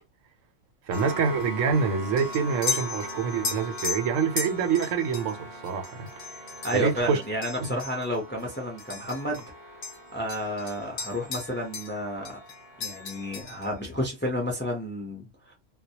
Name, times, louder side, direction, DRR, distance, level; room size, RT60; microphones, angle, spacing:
sound 1, 0.9-9.5 9.8-12.0 12.2-13.8, left 4 dB, 55° left, 0.7 m, -37 dB
sound 2, 0.9-13.4, equal, 45° right, 0.6 m, -42 dB
voice 1, 0.9-6.5 6.7-7.2 7.6-7.8, right 6 dB, 80° right, 1.0 m, -26 dB
voice 2, 6.6-9.5 10.1-12.4 12.8-15.5, equal, 15° left, 0.5 m, -31 dB
2.2 x 2.1 x 2.7 m
omnidirectional pair, 1.3 m